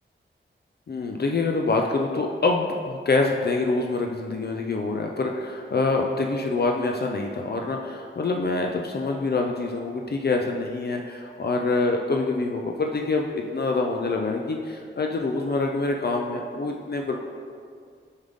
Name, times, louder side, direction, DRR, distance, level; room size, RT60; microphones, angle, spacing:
voice 1, 0.9-17.1, left 3 dB, 55° left, 1 dB, 0.5 m, -26 dB
7.2 x 5.4 x 3.6 m, 2.1 s
wide cardioid pair, 90°, 20 cm